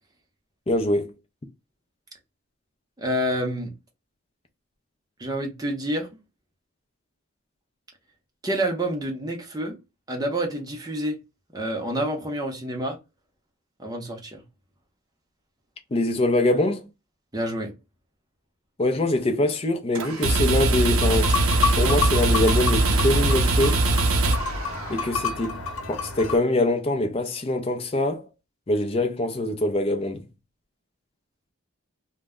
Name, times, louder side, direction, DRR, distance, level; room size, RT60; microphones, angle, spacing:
voice 1, 0.7-1.1 15.9-16.9 18.8-21.3 21.8-23.8 24.9-25.6 25.9-28.2 28.7-30.3, left 1 dB, 25° left, 0.4 m, -24 dB
voice 2, 3.0-3.7 5.2-6.1 8.4-9.8 10.1-11.2 11.5-13.0 13.8-14.4 17.3-17.7, right 1 dB, 15° right, 0.6 m, -28 dB
sound 1, 20.0-25.1, right 2 dB, 70° right, 0.5 m, -22 dB
sound 2, 21.0-26.4, left 3 dB, 65° left, 0.9 m, -29 dB
2.1 x 2.0 x 3.5 m
head